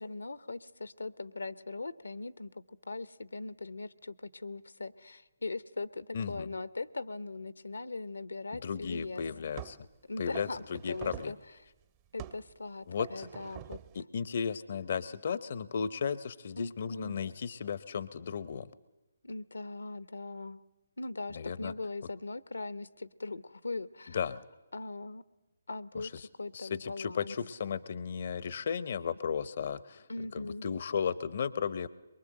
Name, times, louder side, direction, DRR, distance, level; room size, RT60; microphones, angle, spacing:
voice 1, 0.0-9.2 10.1-11.4 12.1-13.8 16.6-17.2 19.2-20.6 21.0-24.2 24.7-25.2 25.7-26.1 26.4-27.4 30.1-30.7, left 3 dB, 80° left, 16 dB, 0.9 m, -40 dB
voice 2, 6.1-6.5 8.5-9.8 10.2-11.3 12.9-13.3 13.9-18.7 21.4-21.7 24.1-24.4 25.9-26.3 26.5-30.0 30.3-31.9, left 6 dB, 50° left, 17 dB, 0.7 m, -35 dB
sound 1, 8.8-8.9 9.5-9.9 10.3-11.4 12.2-12.5 13.0-14.0, right 12 dB, 30° right, 0.7 m, -46 dB
23.5 x 22.5 x 7.7 m, 1.1 s
figure-of-eight pair, 140°, 0 cm